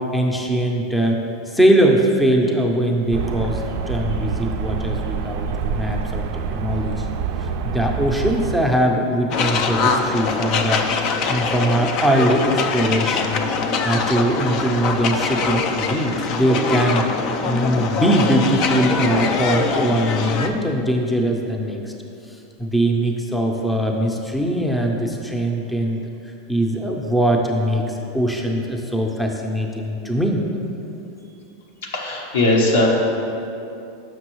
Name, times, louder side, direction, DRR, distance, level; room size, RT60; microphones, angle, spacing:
voice 1, 0.1-1.2 1.5-3.6 3.9-6.2 6.5-7.1 7.4-10.8 11.3-13.5 13.8-17.0 17.4-21.9 22.6-26.0 26.5-30.4, right 1 dB, 5° left, 1 dB, 0.6 m, -21 dB
sound 1, 3.1-8.6, right 6 dB, 65° right, 0.3 m, -26 dB
sound 2, 9.3-20.5, left 4 dB, 50° left, 0.4 m, -23 dB
voice 2, 31.9-32.9, left 2 dB, 80° left, -1 dB, 1.0 m, -18 dB
6.2 x 5.8 x 3.0 m, 2.7 s
hypercardioid pair, 105°, 0 cm